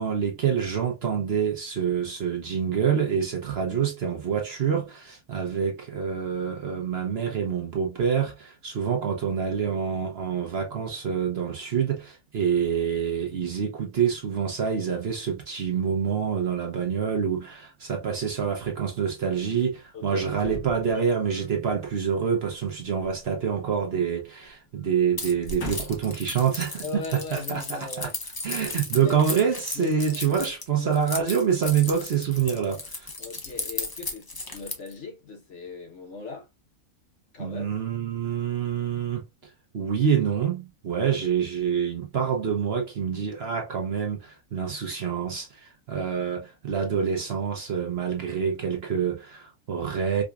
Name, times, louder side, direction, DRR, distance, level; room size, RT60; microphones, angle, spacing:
voice 1, 0.0-28.1 28.4-33.1 37.4-39.2 39.7-50.2, right 7 dB, 50° right, 0.9 m, -26 dB
voice 2, 19.9-20.3 26.8-28.2 28.7-29.2 29.7-30.5 30.7-30.9 33.2-36.5 37.3-37.7 41.0-41.1, left 4 dB, 55° left, 1.2 m, -39 dB
sound 1, 20.4-21.5 23.0-24.2 24.5-24.7 25.3-26.2 26.9-27.0, left 1 dB, 75° left, 1.5 m, -40 dB
Keys jangling, 25.2-34.9, left 3 dB, 25° left, 0.5 m, -35 dB
4.9 x 2.3 x 2.3 m
omnidirectional pair, 1.5 m